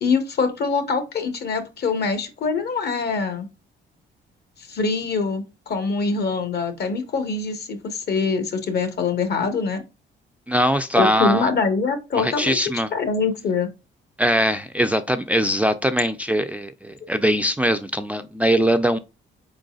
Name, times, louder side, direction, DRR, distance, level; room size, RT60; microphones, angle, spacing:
voice 1, 0.0-3.5 4.7-9.8 11.0-13.7, left 4 dB, 55° left, 1.1 m, -24 dB
voice 2, 10.5-11.5 12.2-12.9 14.2-19.0, equal, 5° right, 0.4 m, -21 dB
4.6 x 3.9 x 2.3 m
cardioid pair, 90°, 20 cm